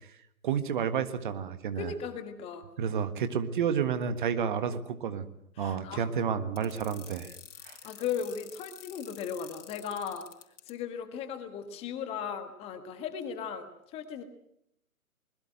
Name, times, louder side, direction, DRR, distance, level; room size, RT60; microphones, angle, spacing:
voice 1, 0.4-1.9 2.8-5.3 5.6-7.4 7.6-7.8, right 7 dB, 35° right, 10 dB, 1.7 m, -30 dB
voice 2, 1.8-2.6 5.6-6.1 7.5-10.3 10.7-14.2, left 7 dB, 15° left, 8 dB, 1.4 m, -37 dB
sound 1, 6.6-10.7, left 8 dB, 40° left, 5.6 m, -48 dB
25.0 x 21.5 x 7.8 m, 0.73 s
figure-of-eight pair, 135°, 43 cm